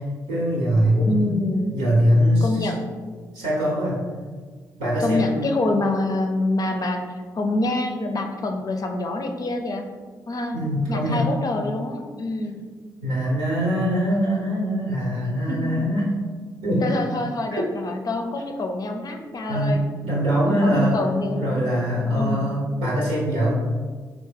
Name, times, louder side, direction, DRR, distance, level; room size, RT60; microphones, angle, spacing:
voice 1, 0.3-1.4 1.7-2.7 3.3-4.0 4.8-5.4 10.5-11.4 13.0-16.1 16.6-16.8 19.5-21.0 21.3-23.5, equal, 90° right, -6 dB, 1.0 m, -22 dB
voice 2, 1.0-1.9 2.4-2.8 5.0-7.0 7.3-9.9 10.3-10.6 10.9-12.6 15.5-15.7 16.8-19.8 20.4-21.7 22.1-22.7, left 2 dB, 45° left, 4 dB, 0.5 m, -26 dB
3.4 x 2.0 x 3.3 m, 1.5 s
hypercardioid pair, 45°, 9 cm